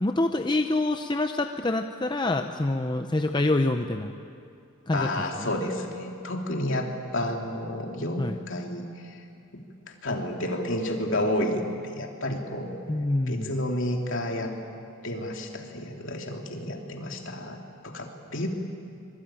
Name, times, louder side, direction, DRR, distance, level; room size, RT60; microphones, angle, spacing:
voice 1, 0.0-4.1 4.9-5.1 5.3-5.5 8.2-8.4 12.9-13.5, left 2 dB, 20° left, 6 dB, 0.6 m, -26 dB
voice 2, 4.9-9.2 9.5-9.6 10.0-12.8 13.3-14.5 15.0-18.5, left 1 dB, 60° left, 1 dB, 2.9 m, -30 dB
25.0 x 23.0 x 9.0 m, 2.5 s
head